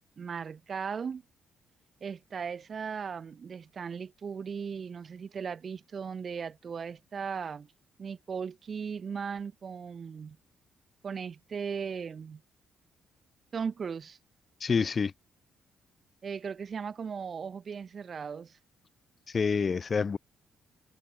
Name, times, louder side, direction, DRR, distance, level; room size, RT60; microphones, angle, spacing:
voice 1, 0.2-1.2 2.0-7.7 8.0-10.4 11.0-12.4 13.5-14.2 16.2-18.6, right 6 dB, 45° right, 0.8 m, -37 dB
voice 2, 14.6-15.1 19.3-20.2, left 5 dB, 40° left, 1.2 m, -27 dB
cardioid pair, 90°, 0 cm